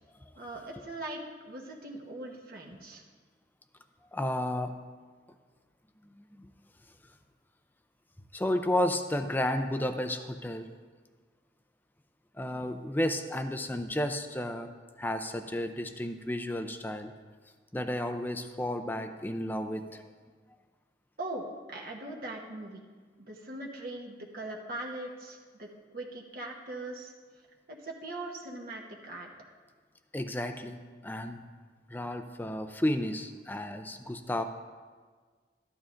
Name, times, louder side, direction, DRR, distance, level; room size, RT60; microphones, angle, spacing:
voice 1, 0.4-3.0 21.2-22.8 23.2-25.7 25.9-27.1 27.7-29.3, right 2 dB, 55° right, 0 dB, 1.1 m, -40 dB
voice 2, 4.1-4.7 6.2-6.5 8.3-10.7 12.4-14.7 15.0-17.1 17.7-20.1 30.1-31.4 31.9-34.4, left 1 dB, 10° left, 8 dB, 0.5 m, -32 dB
13.5 x 11.5 x 2.5 m, 1.5 s
head